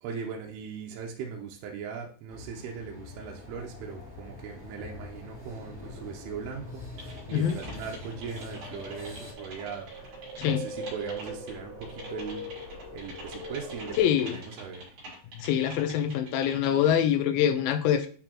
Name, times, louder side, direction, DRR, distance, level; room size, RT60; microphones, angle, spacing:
voice 1, 0.0-10.1 10.4-15.0, right 6 dB, 80° right, 2.8 m, -39 dB
sound 1, 2.3-9.3, left 3 dB, 5° left, 1.6 m, -45 dB
sound 2, 3.4-14.0, equal, 30° left, 1.1 m, -43 dB
Typing, 7.0-16.9, right 1 dB, 50° right, 2.9 m, -46 dB
voice 2, 14.0-14.4 15.4-18.1, left 9 dB, 80° left, 2.3 m, -24 dB
8.8 x 4.2 x 2.9 m
omnidirectional pair, 4.6 m